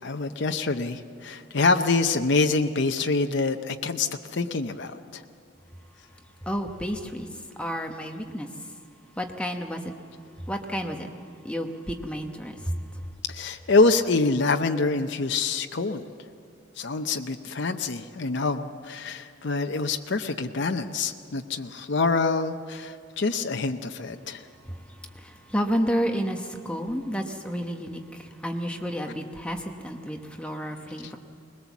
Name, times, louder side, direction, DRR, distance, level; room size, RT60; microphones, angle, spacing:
voice 1, 0.0-5.2 13.3-16.1 16.8-24.4 31.0-31.1, left 3 dB, 55° left, 6 dB, 0.7 m, -26 dB
voice 2, 6.5-7.3 7.6-8.5 9.2-9.9 10.5-11.1 11.4-12.8 24.7-31.2, equal, 5° left, 3 dB, 1.0 m, -31 dB
21.0 x 20.5 x 7.2 m, 2.3 s
head